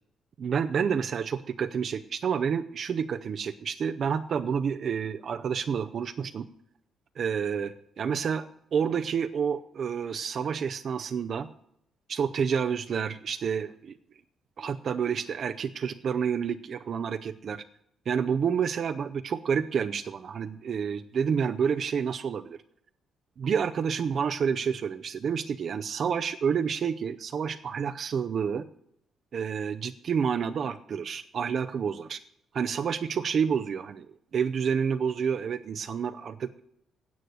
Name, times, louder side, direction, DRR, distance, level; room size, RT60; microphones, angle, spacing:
voice 1, 0.4-6.4 7.2-8.5 8.7-11.5 12.1-14.0 14.6-17.6 18.1-22.6 23.4-28.7 29.3-32.2 32.5-34.1 34.3-36.6, right 7 dB, 55° right, 8 dB, 0.6 m, -29 dB
9.5 x 7.6 x 9.4 m, 0.75 s
cardioid pair, 90°, 0 cm